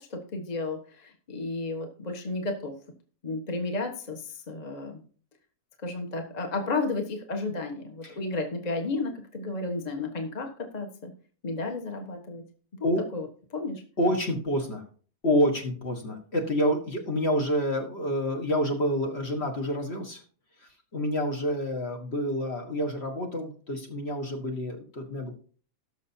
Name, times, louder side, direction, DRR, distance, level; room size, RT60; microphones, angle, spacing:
voice 1, 0.0-2.7 3.2-5.0 5.8-11.1 11.4-12.4 12.8-13.8, left 3 dB, 25° left, 3 dB, 1.4 m, -33 dB
voice 2, 14.0-14.8 15.2-20.2 20.9-25.3, equal, 45° left, 2 dB, 1.6 m, -28 dB
18.5 x 6.3 x 2.8 m, 0.43 s
omnidirectional pair, 1.7 m